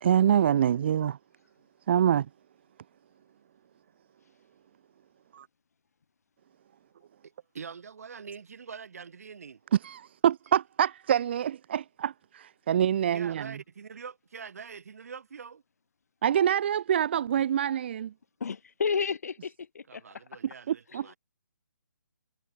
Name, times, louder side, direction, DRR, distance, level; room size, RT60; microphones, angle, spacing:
voice 1, 0.0-1.2 1.9-2.3 5.3-5.5 9.7-13.5 16.2-18.1 20.7-21.1, right 9 dB, 35° right, 0.6 m, -25 dB
voice 2, 7.2-9.6 13.1-15.6 19.9-21.2, right 6 dB, 50° right, 6.2 m, -44 dB
voice 3, 18.4-20.0 20.9-21.1, left 5 dB, 55° left, 2.7 m, -32 dB
figure-of-eight pair, 140°, 10 cm